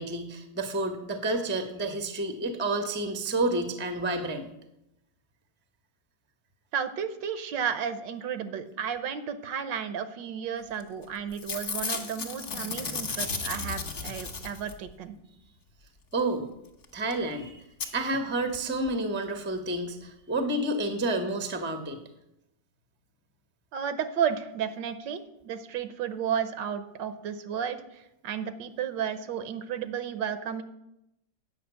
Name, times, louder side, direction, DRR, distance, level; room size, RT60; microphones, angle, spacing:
voice 1, 0.0-4.5 16.1-16.5 16.9-22.0, right 2 dB, 10° right, 7 dB, 0.6 m, -30 dB
voice 2, 6.7-15.2 23.7-30.6, right 8 dB, 75° right, 11 dB, 1.5 m, -33 dB
Packing tape duct tape / Tearing, 10.8-11.0 11.3-14.9 16.8-16.9 17.1-17.2 17.8-17.9 18.5-18.6 18.8-18.9, left 4 dB, 45° left, 1.3 m, -34 dB
8.8 x 5.8 x 8.0 m, 0.84 s
omnidirectional pair, 2.0 m